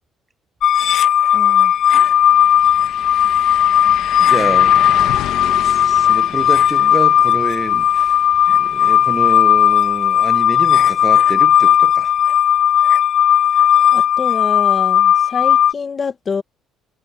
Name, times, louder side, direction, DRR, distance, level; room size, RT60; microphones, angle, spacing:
sound 1, 0.6-15.7, left 9 dB, 55° left, 0.3 m, -14 dB
sound 2, 1.3-1.4 1.7-11.5 11.9-12.0 14.8-14.9, left 13 dB, 70° left, 1.6 m, -33 dB
voice 1, 1.3-1.7 13.9-16.4, left 5 dB, 30° left, 1.8 m, -26 dB
voice 2, 4.2-5.2 5.6-8.2 8.5-12.1, right 3 dB, 15° right, 1.2 m, -27 dB
cardioid pair, 125°, 0 cm